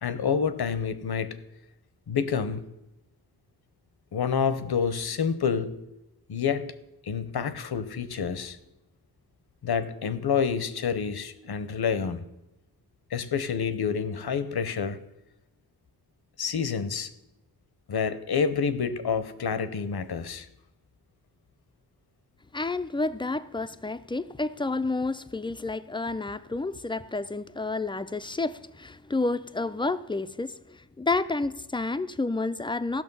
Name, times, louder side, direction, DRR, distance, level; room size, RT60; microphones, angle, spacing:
voice 1, 0.0-1.4 2.1-2.6 4.1-5.8 6.3-6.7 7.0-8.6 9.6-12.2 13.1-15.0 16.4-17.1 17.9-20.5, left 6 dB, 80° left, 0.8 m, -28 dB
voice 2, 22.5-33.0, left 3 dB, 15° left, 0.4 m, -30 dB
15.5 x 6.2 x 5.3 m
wide cardioid pair, 105°, 38 cm